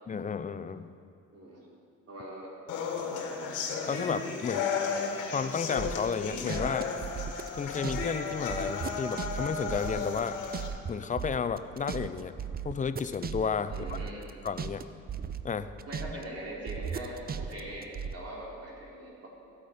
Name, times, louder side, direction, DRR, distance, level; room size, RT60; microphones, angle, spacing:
voice 1, 0.1-0.9 3.9-4.7 5.3-6.9 7.6-10.3 10.9-12.3 12.6-14.0 14.4-15.1 15.4-15.7 16.1-16.2, left 6 dB, 25° left, 11 dB, 0.5 m, -32 dB
voice 2, 1.3-1.7 2.1-2.5 3.1-3.3 13.7-14.2 15.9-19.3, right 1 dB, 55° right, -4 dB, 3.5 m, -42 dB
sound 1, 2.7-10.7, left 5 dB, 85° left, 1.5 m, -34 dB
sound 2, 5.8-8.1 8.3-10.9 11.2-14.8 15.1-16.3 16.7-18.1, right 7 dB, 30° right, 0.5 m, -36 dB
14.5 x 8.7 x 5.0 m, 2.4 s
cardioid pair, 90°, 30 cm